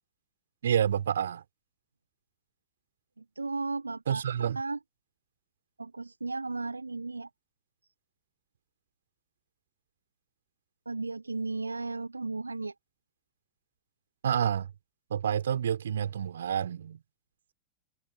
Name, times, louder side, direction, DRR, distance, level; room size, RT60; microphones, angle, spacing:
voice 1, 0.6-1.4 4.1-4.6 14.2-14.7 15.1-17.0, right 9 dB, 65° right, 5.0 m, -28 dB
voice 2, 3.2-4.2 4.5-4.8 5.8-7.3 10.8-12.7, right 3 dB, 80° right, 1.5 m, -35 dB
figure-of-eight pair, 90°, 0 cm